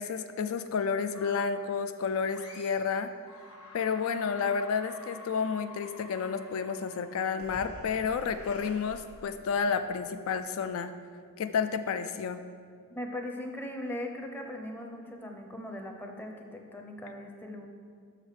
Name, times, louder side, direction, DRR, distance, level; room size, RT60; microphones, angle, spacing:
voice 1, 0.0-3.1 3.7-10.9 11.4-12.4, left 6 dB, 65° left, 10 dB, 0.3 m, -31 dB
sound 1, 1.1-1.7 2.3-2.9 3.2-9.7, left 1 dB, 85° left, 1.2 m, -49 dB
voice 2, 13.0-17.7, left 1 dB, 10° left, 2 dB, 0.6 m, -39 dB
6.2 x 4.9 x 6.5 m, 2.1 s
head